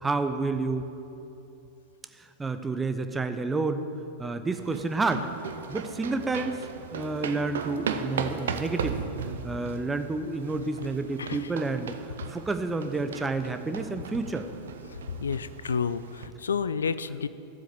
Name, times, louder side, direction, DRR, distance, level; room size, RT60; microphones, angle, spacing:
voice 1, 0.0-0.9 2.1-3.8 4.2-5.3 5.7-9.1 9.4-14.5, right 3 dB, 10° right, 9 dB, 0.7 m, -30 dB
sound 1, 4.5-16.3, right 6 dB, 65° right, 0.7 m, -37 dB
voice 2, 15.2-17.3, left 6 dB, 70° left, 15 dB, 0.4 m, -30 dB
13.5 x 7.7 x 7.0 m, 2.8 s
figure-of-eight pair, 90°, 0 cm